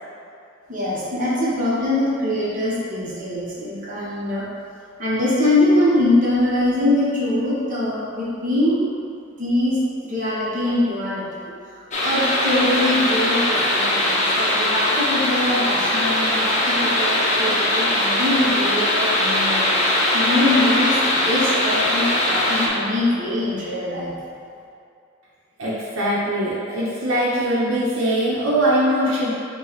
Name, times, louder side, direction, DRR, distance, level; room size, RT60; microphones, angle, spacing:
voice 1, 0.7-4.4 5.0-8.9 9.4-9.8 10.0-11.5 12.0-24.1, left 1 dB, 40° right, -8 dB, 1.1 m, -23 dB
sound 1, 11.9-22.7, left 1 dB, 35° left, 0.6 m, -20 dB
voice 2, 25.6-29.3, right 1 dB, 80° right, -7 dB, 0.9 m, -21 dB
5.5 x 2.3 x 4.1 m, 2.5 s
head